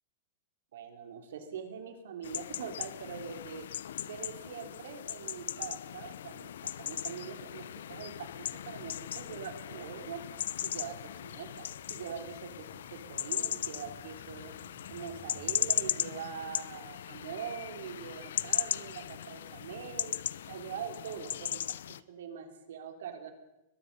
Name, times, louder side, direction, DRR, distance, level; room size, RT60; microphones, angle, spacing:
voice 1, 0.7-3.7 4.0-10.2 10.6-14.5 14.9-20.2 20.5-21.8 22.1-23.3, right 7 dB, 65° right, 6 dB, 3.6 m, -43 dB
sound 1, 2.2-22.0, left 10 dB, 70° left, 0.7 m, -38 dB
sound 2, 7.0-15.7, right 3 dB, 10° right, 5.4 m, -60 dB
22.0 x 21.5 x 5.5 m, 0.95 s
supercardioid pair, 180°, 0 cm